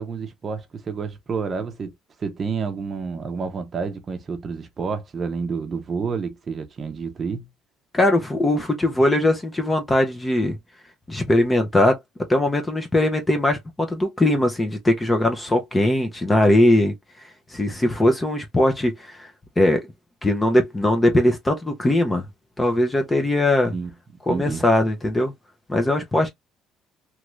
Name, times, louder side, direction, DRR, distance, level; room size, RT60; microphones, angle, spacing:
voice 1, 0.0-1.9 2.2-7.5 23.6-23.9 24.3-24.6, right 5 dB, 30° right, 0.7 m, -29 dB
voice 2, 7.9-10.6 11.1-12.0 12.3-16.9 17.5-19.3 19.6-19.9 20.2-22.3 22.6-23.7 24.3-25.3 25.7-26.3, left 1 dB, 10° left, 0.5 m, -20 dB
3.0 x 2.4 x 3.0 m
cardioid pair, 170°, 0 cm